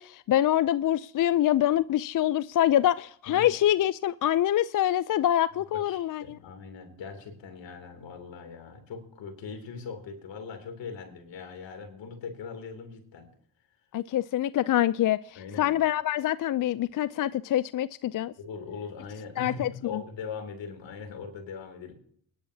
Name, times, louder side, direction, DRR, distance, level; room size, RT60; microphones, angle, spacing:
voice 1, 0.0-6.2 13.9-18.3 19.4-19.7, left 12 dB, 45° left, 0.4 m, -25 dB
voice 2, 5.7-13.3 15.3-15.7 18.4-21.9, left 5 dB, 75° left, 3.0 m, -40 dB
23.5 x 10.5 x 2.8 m
supercardioid pair, 50°, 45 cm